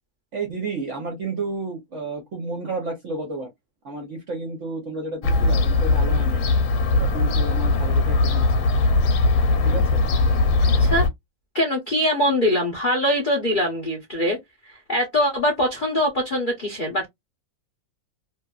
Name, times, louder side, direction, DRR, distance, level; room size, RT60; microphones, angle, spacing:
voice 1, 0.3-3.5 3.8-6.5 6.9-8.4 9.6-10.0, right 3 dB, 60° right, 0.8 m, -31 dB
Fowl / Gull seagull, 5.2-11.1, left 3 dB, 90° left, 1.4 m, -20 dB
voice 2, 11.5-14.4 14.6-17.1, equal, 65° left, 0.5 m, -22 dB
2.9 x 2.5 x 2.3 m
omnidirectional pair, 2.1 m